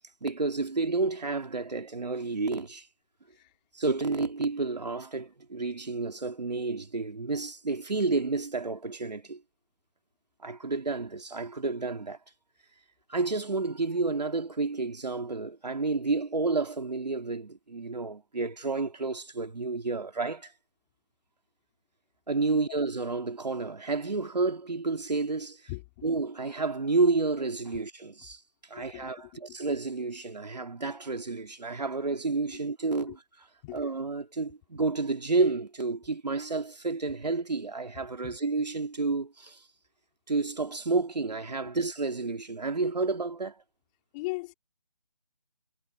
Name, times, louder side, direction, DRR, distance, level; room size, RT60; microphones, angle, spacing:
voice 1, 0.2-2.9 3.7-9.4 10.4-12.2 13.1-20.5 22.3-25.6 26.0-28.4 28.7-33.2 33.7-39.6 40.3-43.6, right 3 dB, 90° right, 2.8 m, -30 dB
voice 2, 25.7-26.1 28.8-29.1 29.5-29.6 33.6-33.8 38.2-38.4 44.1-44.5, left 24 dB, 10° left, 4.4 m, -38 dB
figure-of-eight pair, 175°, 21 cm